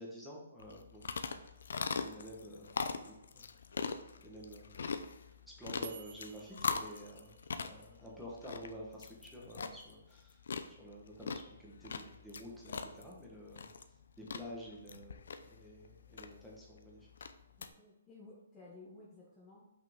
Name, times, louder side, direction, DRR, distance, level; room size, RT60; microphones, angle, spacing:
voice 1, 0.0-1.5 1.9-2.7 3.0-3.5 4.2-4.8 5.6-10.4 10.7-13.7 14.2-17.1, equal, ahead, -5 dB, 1.3 m, -50 dB
sound 1, 0.6-17.7, left 5 dB, 70° left, 0.6 m, -42 dB
sound 2, 4.8-8.0, right 9 dB, 50° right, 0.5 m, -55 dB
voice 2, 17.6-19.7, left 2 dB, 15° left, -4 dB, 1.0 m, -55 dB
5.7 x 5.6 x 3.6 m, 0.95 s
hypercardioid pair, 165°, 0 cm